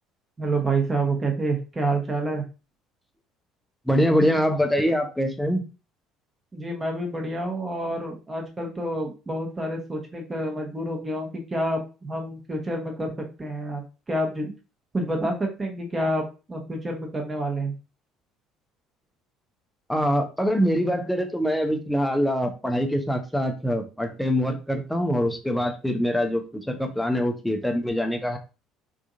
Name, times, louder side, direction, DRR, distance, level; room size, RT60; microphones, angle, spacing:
voice 1, 0.4-2.4 6.5-13.1 13.4-13.8 14.1-14.5 14.9-16.2 16.5-17.7, right 2 dB, 20° right, 2 dB, 0.9 m, -28 dB
voice 2, 3.9-5.6 19.9-28.4, equal, 5° left, 5 dB, 0.6 m, -24 dB
3.5 x 2.6 x 2.5 m, 0.31 s
figure-of-eight pair, 55°, 0 cm